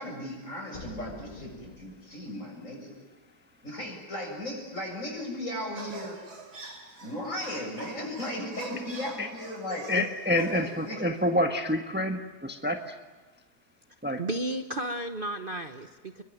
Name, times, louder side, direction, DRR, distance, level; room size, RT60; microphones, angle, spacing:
voice 1, 0.0-2.9 3.6-6.2 7.0-9.9 10.5-11.0, left 1 dB, 50° left, 2 dB, 7.9 m, -36 dB
sound 1, 0.7-2.5, left 2 dB, 25° left, 2.0 m, -46 dB
sound 2, 5.8-10.9, right 4 dB, 75° right, 3.4 m, -45 dB
voice 2, 9.9-12.8 14.0-14.2, left 1 dB, 5° right, 5 dB, 1.4 m, -27 dB
voice 3, 14.2-16.2, right 1 dB, 35° right, 7 dB, 1.2 m, -33 dB
28.5 x 22.5 x 9.3 m, 1.3 s
omnidirectional pair, 1.8 m